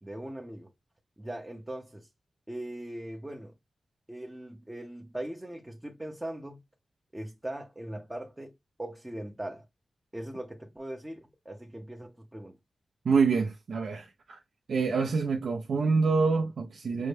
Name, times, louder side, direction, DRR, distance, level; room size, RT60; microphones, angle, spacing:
voice 1, 0.0-0.7 1.2-2.1 2.5-3.5 4.1-6.6 7.1-9.7 10.1-12.6, right 1 dB, 10° right, 0.5 m, -40 dB
voice 2, 13.0-14.4 14.7-17.1, right 4 dB, 75° right, 0.4 m, -26 dB
5.3 x 2.1 x 3.2 m
wide cardioid pair, 120°, 0 cm